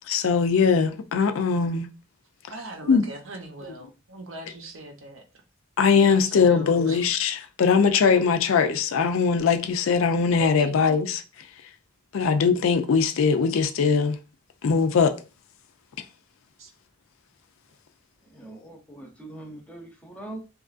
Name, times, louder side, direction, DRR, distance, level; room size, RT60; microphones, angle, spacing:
voice 1, 0.1-1.9 2.9-3.0 5.8-11.2 12.1-14.2 14.6-15.2, left 5 dB, 70° left, 0.4 m, -21 dB
voice 2, 2.5-5.2 6.0-7.0 10.2-10.8 16.6-16.7, right 2 dB, 70° right, 0.7 m, -40 dB
voice 3, 18.3-20.4, right 2 dB, 5° left, 0.7 m, -41 dB
2.9 x 2.4 x 2.4 m
head